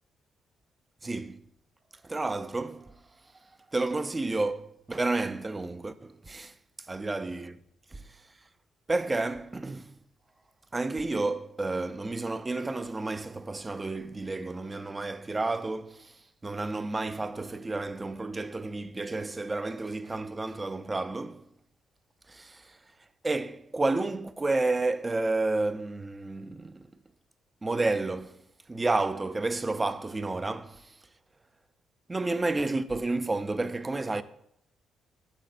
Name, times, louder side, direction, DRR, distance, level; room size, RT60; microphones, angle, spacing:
voice 1, 1.0-1.5 2.0-2.9 3.7-6.5 6.9-7.6 7.9-8.2 8.9-9.9 10.7-21.4 22.3-22.8 23.2-26.9 27.6-28.4 28.7-31.0 32.1-34.2, right 2 dB, 20° right, 0.4 m, -31 dB
12.0 x 5.3 x 2.5 m
cardioid pair, 90°, 0 cm